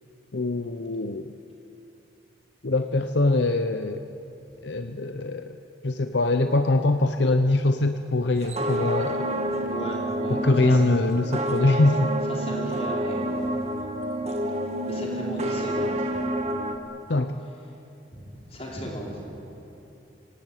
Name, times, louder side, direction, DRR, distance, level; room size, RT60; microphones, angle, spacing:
voice 1, 0.3-1.3 2.6-4.0 4.6-5.6 5.8-9.3 10.3-12.1 17.1-17.3, left 2 dB, 70° left, 8 dB, 0.8 m, -23 dB
sound 1, 8.4-16.8, right 1 dB, 35° right, 1.7 m, -28 dB
voice 2, 9.7-10.8 12.3-13.4 14.9-16.1 18.5-19.1, equal, 35° left, -3 dB, 5.6 m, -35 dB
26.5 x 18.0 x 9.1 m, 2.9 s
head